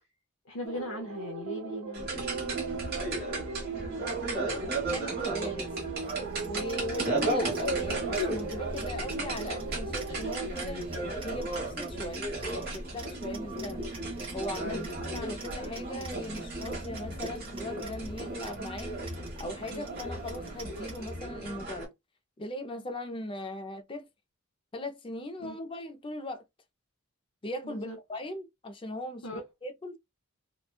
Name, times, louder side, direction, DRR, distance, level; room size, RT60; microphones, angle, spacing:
voice 1, 0.5-2.3 14.6-14.9 19.7-19.8 25.4-25.6 27.6-28.0 29.2-29.4, equal, 70° left, 0.6 m, -39 dB
sound 1, 0.6-10.5, right 4 dB, 65° right, 0.5 m, -37 dB
sound 2, 1.9-21.8, right 2 dB, 45° right, 1.1 m, -35 dB
voice 2, 4.0-5.7 6.4-10.9 11.2-13.9 14.3-18.9 19.4-21.9 22.4-24.1 24.7-26.4 27.4-30.0, left 1 dB, 25° left, 0.4 m, -39 dB
sound 3, 6.0-21.1, right 4 dB, 25° right, 0.6 m, -50 dB
2.9 x 2.2 x 2.2 m
head